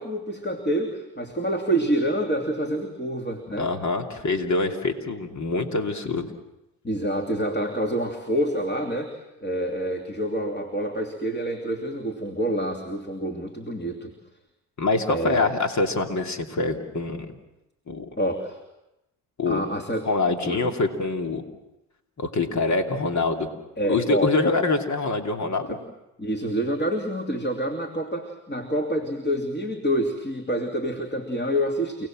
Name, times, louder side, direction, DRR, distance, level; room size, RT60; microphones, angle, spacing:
voice 1, 0.0-3.7 6.8-14.1 15.1-15.5 18.2-18.6 19.5-20.1 20.4-20.6 23.8-24.6 25.7-25.8 26.2-32.1, right 1 dB, 25° left, 3 dB, 3.0 m, -27 dB
voice 2, 3.6-6.3 14.8-17.3 17.9-18.1 19.4-19.7 20.0-21.4 22.2-23.5 23.9-25.8, left 3 dB, 45° left, 4 dB, 2.9 m, -25 dB
29.0 x 19.0 x 7.7 m, 0.94 s
supercardioid pair, 65°, 39 cm